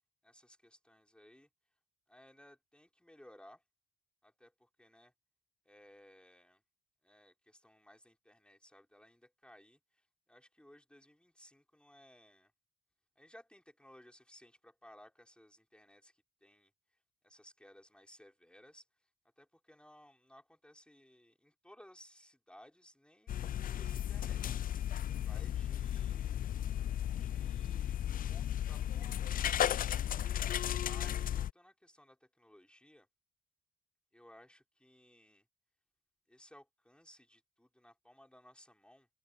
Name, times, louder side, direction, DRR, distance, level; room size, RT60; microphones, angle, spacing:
voice 1, 0.2-1.5 2.1-3.6 4.2-5.1 5.6-6.6 7.0-12.5 13.2-19.1 19.4-26.5 27.1-28.0 28.3-33.1 34.1-35.4 36.3-39.1, left 1 dB, 5° left, 4.4 m, -61 dB
sound 1, 23.3-31.5, left 10 dB, 45° left, 0.4 m, -35 dB
cardioid pair, 90°, 20 cm